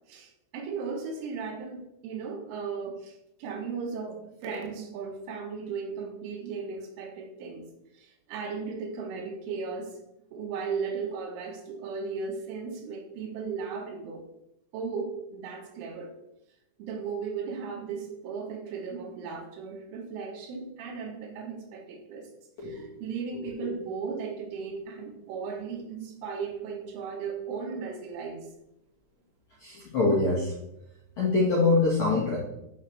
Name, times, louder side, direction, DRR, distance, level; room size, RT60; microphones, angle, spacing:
voice 1, 0.1-7.7 7.9-10.0 10.3-14.3 14.7-16.2 16.8-22.3 22.6-28.5, right 5 dB, 75° right, 2 dB, 3.8 m, -36 dB
voice 2, 22.6-23.0 23.3-23.7 29.6-30.5 31.2-32.4, left 3 dB, 60° left, -5 dB, 1.9 m, -25 dB
12.5 x 6.1 x 3.4 m, 0.83 s
omnidirectional pair, 5.7 m